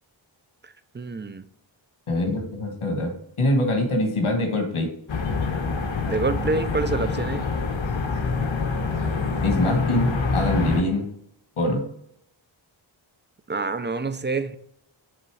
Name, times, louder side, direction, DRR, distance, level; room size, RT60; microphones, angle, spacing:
voice 1, 0.9-1.4 6.1-7.5 13.5-14.6, right 3 dB, 25° right, 12 dB, 0.4 m, -27 dB
voice 2, 2.1-4.9 9.4-11.1 11.6-11.9, left 1 dB, 85° left, 4 dB, 1.4 m, -24 dB
sound 1, 5.1-10.8, left 4 dB, 70° left, 1.0 m, -26 dB
6.9 x 3.6 x 4.5 m, 0.74 s
wide cardioid pair, 50°, 49 cm